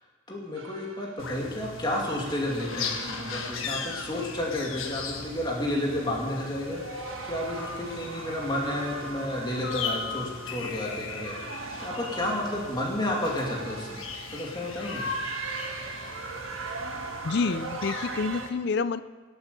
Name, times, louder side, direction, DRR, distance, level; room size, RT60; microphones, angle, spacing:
voice 1, 0.3-14.0 14.3-15.1, left 1 dB, 20° left, -2 dB, 2.5 m, -31 dB
sound 1, 0.6-1.9 2.4-4.9 5.4-5.7 6.5-18.5, right 3 dB, 80° right, 1.5 m, -40 dB
sound 2, 1.2-18.5, left 5 dB, 85° left, 1.5 m, -38 dB
voice 2, 17.2-19.0, left 4 dB, 55° left, 14 dB, 0.5 m, -28 dB
19.5 x 8.1 x 6.8 m, 1.4 s
head